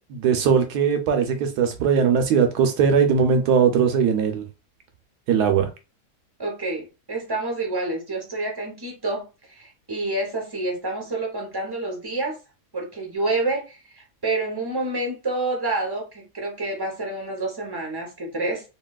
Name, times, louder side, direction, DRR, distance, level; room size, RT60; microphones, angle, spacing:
voice 1, 0.1-4.4 5.3-5.7, right 6 dB, 80° right, 1.2 m, -20 dB
voice 2, 6.4-9.2 9.5-12.4 12.7-18.6, right 2 dB, 25° right, 0.6 m, -28 dB
3.0 x 2.8 x 2.3 m
omnidirectional pair, 1.7 m